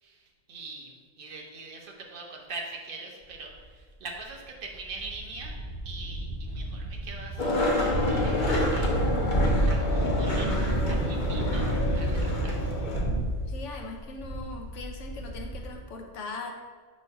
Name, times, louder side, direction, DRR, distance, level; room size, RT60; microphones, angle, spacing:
voice 1, 0.0-5.6 5.8-8.9 9.4-12.7, right 3 dB, 50° right, 0 dB, 1.1 m, -43 dB
sound 1, 3.5-3.6 4.3-4.4 4.7-15.7, right 1 dB, 20° left, 1.4 m, -29 dB
Skateboard, 7.4-13.0, left 2 dB, 45° left, 0.9 m, -29 dB
voice 2, 13.5-16.5, left 3 dB, 75° left, 3 dB, 1.1 m, -40 dB
4.6 x 4.2 x 5.5 m, 1.5 s
omnidirectional pair, 1.3 m